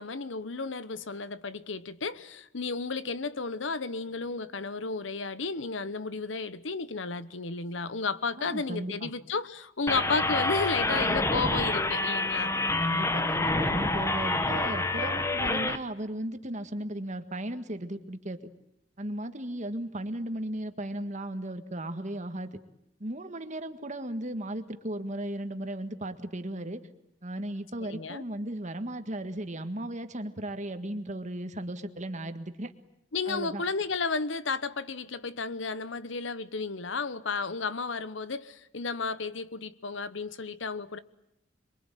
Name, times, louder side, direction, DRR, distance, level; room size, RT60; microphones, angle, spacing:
voice 1, 0.0-12.6 27.8-28.2 33.1-41.0, left 4 dB, 80° left, 1.1 m, -33 dB
voice 2, 8.4-9.1 12.8-18.4 19.0-22.6 23.0-26.8 27.2-32.7 33.3-33.6, right 1 dB, 40° right, 1.8 m, -36 dB
sound 1, 9.9-15.8, left 2 dB, 15° left, 1.1 m, -27 dB
27.0 x 23.0 x 9.2 m
head